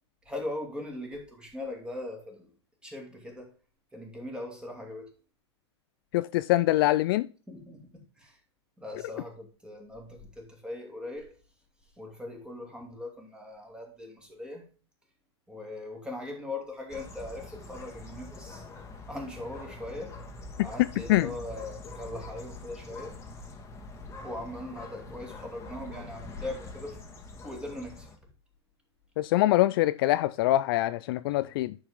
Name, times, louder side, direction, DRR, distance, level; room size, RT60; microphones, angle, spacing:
voice 1, 0.2-2.5 2.8-3.5 3.9-5.1 7.5-8.4 8.8-11.4 12.0-14.7 15.5-18.7 19.1-20.2 20.6-23.2 24.2-27.0 27.4-28.1, left 1 dB, 5° right, 2.7 m, -40 dB
voice 2, 6.1-7.3 21.1-21.3 29.2-31.8, left 16 dB, 55° left, 0.4 m, -24 dB
sound 1, 16.9-28.2, left 2 dB, 20° left, 1.8 m, -44 dB
10.5 x 4.9 x 3.7 m
hypercardioid pair, 105°, 15 cm